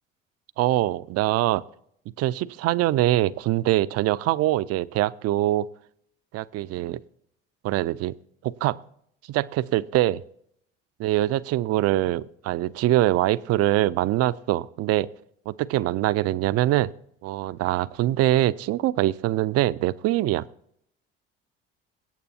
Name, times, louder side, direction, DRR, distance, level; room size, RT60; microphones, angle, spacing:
voice 1, 0.6-1.6 2.2-5.7 6.3-7.0 7.6-8.1 8.4-8.8 9.3-10.2 11.0-15.1 15.5-16.9 17.2-20.4, right 15 dB, 55° right, 17 dB, 0.4 m, -23 dB
22.0 x 8.4 x 2.8 m, 0.71 s
hypercardioid pair, 65°, 29 cm